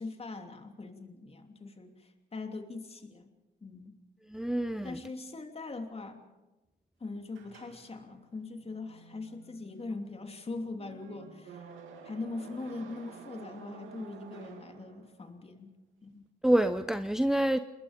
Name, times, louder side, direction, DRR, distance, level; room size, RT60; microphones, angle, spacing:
voice 1, 0.0-3.3 3.6-4.0 4.8-6.2 7.0-11.6 12.0-15.7 16.0-16.2, left 3 dB, 30° left, 3.0 m, -41 dB
voice 2, 4.3-5.0 16.4-17.6, right 1 dB, ahead, 0.7 m, -27 dB
sound 1, 7.3-15.4, right 6 dB, 80° right, 2.8 m, -51 dB
28.0 x 20.5 x 5.2 m
cardioid pair, 90°, 20 cm